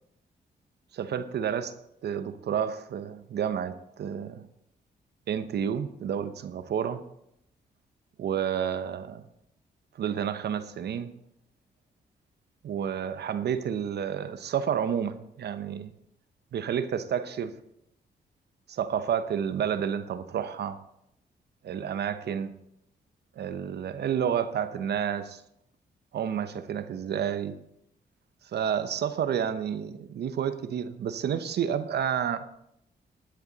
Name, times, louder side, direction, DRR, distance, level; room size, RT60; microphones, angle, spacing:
voice 1, 0.9-1.7 2.0-4.5 5.3-7.0 8.2-9.2 10.0-11.1 12.6-15.9 16.5-17.5 18.7-20.8 21.6-22.5 23.4-25.4 26.1-27.6 28.4-32.5, right 8 dB, 70° right, 11 dB, 0.8 m, -30 dB
10.5 x 10.5 x 4.0 m, 0.76 s
cardioid pair, 70°, 18 cm